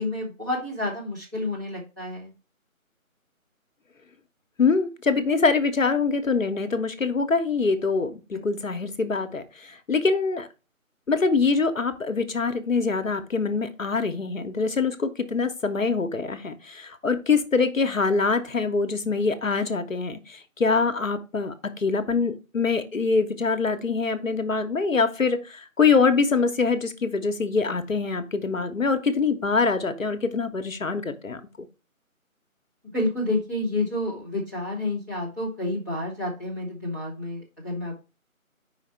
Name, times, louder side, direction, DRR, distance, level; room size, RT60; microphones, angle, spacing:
voice 1, 0.0-2.3 8.3-8.4 32.9-38.0, left 2 dB, 10° right, 1.3 m, -29 dB
voice 2, 4.6-10.5 11.1-31.4, left 4 dB, 65° left, 0.9 m, -24 dB
5.1 x 5.0 x 4.2 m
figure-of-eight pair, 165°, 42 cm